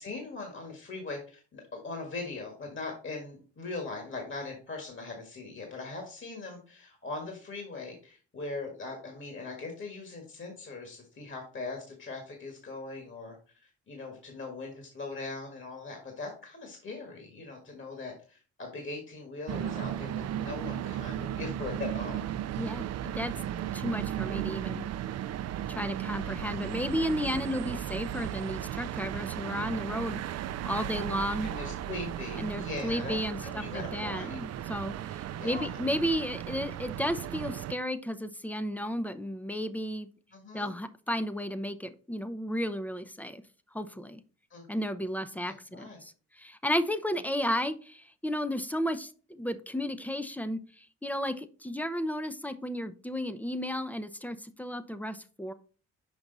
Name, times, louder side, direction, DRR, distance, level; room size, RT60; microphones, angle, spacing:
voice 1, 0.0-22.3 31.4-34.4 35.4-35.7 40.3-40.7 44.5-44.6 45.7-46.0, left 3 dB, 40° left, 2 dB, 1.8 m, -40 dB
sound 1, 19.5-37.7, right 11 dB, 55° right, 0.5 m, -35 dB
voice 2, 23.7-24.9 25.7-30.2 30.7-31.5 32.4-40.1 40.5-43.4 43.7-44.2 44.7-55.5, equal, 5° left, 12 dB, 0.6 m, -33 dB
6.1 x 5.2 x 3.9 m, 0.39 s
cardioid pair, 90°, 30 cm